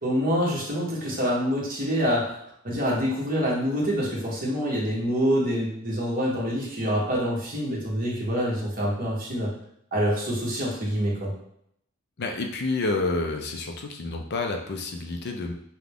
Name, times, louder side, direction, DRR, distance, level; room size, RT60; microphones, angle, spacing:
voice 1, 0.0-2.4 2.6-9.5 9.9-11.3, equal, 45° right, -4 dB, 1.4 m, -26 dB
voice 2, 12.2-15.5, left 3 dB, 55° left, 4 dB, 0.6 m, -29 dB
5.9 x 2.3 x 3.5 m, 0.72 s
head